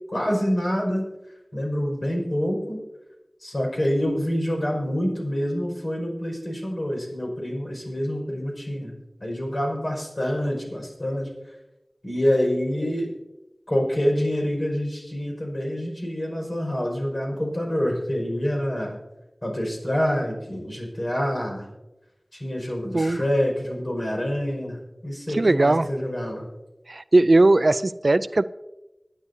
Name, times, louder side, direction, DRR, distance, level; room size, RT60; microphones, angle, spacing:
voice 1, 0.1-1.0 1.5-2.8 3.4-8.9 9.2-11.3 12.0-13.1 13.7-19.0 19.4-21.7 22.3-24.8 25.0-26.4, equal, 50° left, -1 dB, 5.4 m, -26 dB
voice 2, 25.3-25.9 26.9-28.4, right 2 dB, 65° right, 15 dB, 0.4 m, -19 dB
25.5 x 9.6 x 2.7 m, 0.99 s
wide cardioid pair, 45°, 0 cm